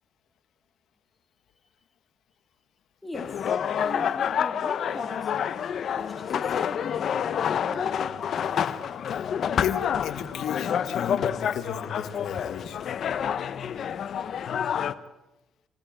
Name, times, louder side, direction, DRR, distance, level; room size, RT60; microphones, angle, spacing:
voice 1, 3.0-5.4 5.9-8.1, left 1 dB, 10° left, 2.9 m, -41 dB
sound 1, 3.1-14.9, left 8 dB, 60° left, 1.2 m, -28 dB
voice 2, 9.6-12.9, left 8 dB, 80° left, 2.2 m, -34 dB
27.5 x 17.5 x 7.7 m
cardioid pair, 90°, 0 cm